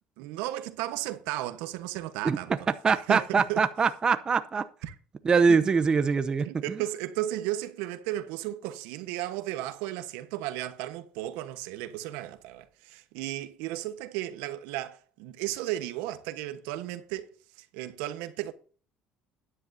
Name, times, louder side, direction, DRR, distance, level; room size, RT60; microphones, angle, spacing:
voice 1, 0.2-2.5 3.1-3.7 4.8-4.9 5.5-5.6 6.4-17.3 17.6-18.5, right 14 dB, 85° right, 1.2 m, -34 dB
voice 2, 2.8-4.7 5.2-6.8, right 5 dB, 30° right, 0.7 m, -23 dB
12.5 x 10.0 x 2.8 m
cardioid pair, 110°, 3 cm